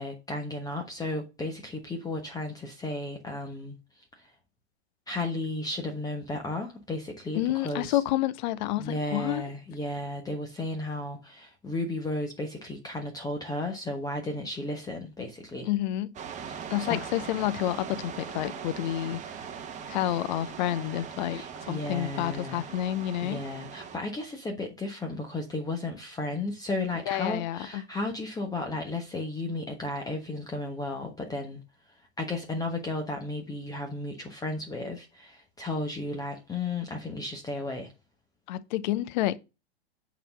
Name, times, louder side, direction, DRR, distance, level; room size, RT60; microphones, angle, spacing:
voice 1, 0.0-4.3 5.1-8.0 8.8-15.7 16.5-17.0 21.3-22.7 23.2-31.6 31.9-37.9, left 2 dB, 10° left, 1.2 m, -34 dB
voice 2, 7.3-9.4 15.6-16.1 16.7-19.2 19.9-23.4 27.1-27.8 38.5-39.4, left 14 dB, 45° left, 0.7 m, -29 dB
sound 1, 16.1-24.0, right 7 dB, 20° right, 1.2 m, -40 dB
9.1 x 4.1 x 5.6 m
figure-of-eight pair, 100°, 33 cm